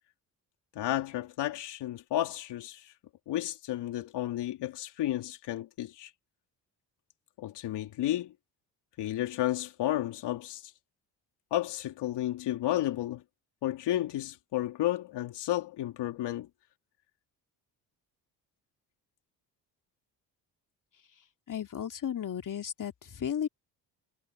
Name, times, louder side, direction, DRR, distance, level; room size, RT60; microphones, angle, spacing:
voice 1, 0.7-2.9 3.3-6.1 7.4-8.3 9.0-10.7 11.5-13.2 13.6-16.5, left 13 dB, 75° left, 3.3 m, -32 dB
voice 2, 21.5-23.5, left 9 dB, 50° left, 2.6 m, -34 dB
supercardioid pair, 65°, 41 cm